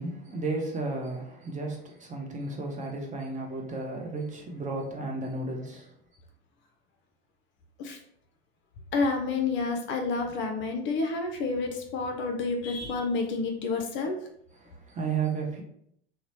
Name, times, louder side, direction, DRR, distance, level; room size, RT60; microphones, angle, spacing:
voice 1, 0.0-5.9 14.6-15.6, right 3 dB, 25° right, 0.6 m, -33 dB
voice 2, 8.9-14.2, left 3 dB, 40° left, 0.5 m, -29 dB
2.9 x 2.1 x 2.9 m
hypercardioid pair, 75°, 31 cm